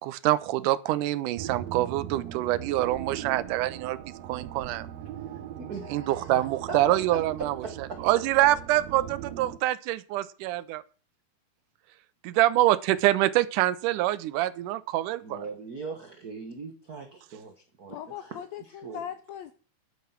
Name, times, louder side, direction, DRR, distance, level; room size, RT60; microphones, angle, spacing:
voice 1, 0.0-4.0 4.2-4.9 5.9-10.8 12.2-15.5, right 15 dB, 90° right, 2.2 m, -25 dB
sound 1, 1.4-9.6, right 10 dB, 70° right, 1.8 m, -40 dB
voice 2, 5.6-6.4 6.7-7.2 7.6-8.0 15.2-19.0, right 4 dB, 55° right, 1.1 m, -40 dB
voice 3, 17.9-19.5, left 10 dB, 75° left, 1.7 m, -39 dB
10.5 x 8.3 x 5.9 m
omnidirectional pair, 3.6 m